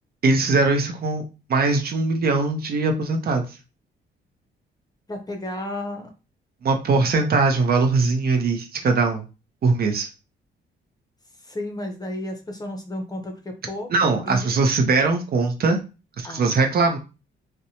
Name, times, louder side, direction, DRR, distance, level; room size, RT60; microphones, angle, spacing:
voice 1, 0.2-1.2 1.5-3.4 6.6-9.2 9.6-10.1 13.9-15.8 16.2-17.0, right 3 dB, 50° right, 4 dB, 0.6 m, -21 dB
voice 2, 5.1-6.1 11.4-14.6 16.2-16.7, left 1 dB, 20° left, 4 dB, 0.6 m, -33 dB
2.6 x 2.1 x 2.8 m, 0.31 s
cardioid pair, 90°, 20 cm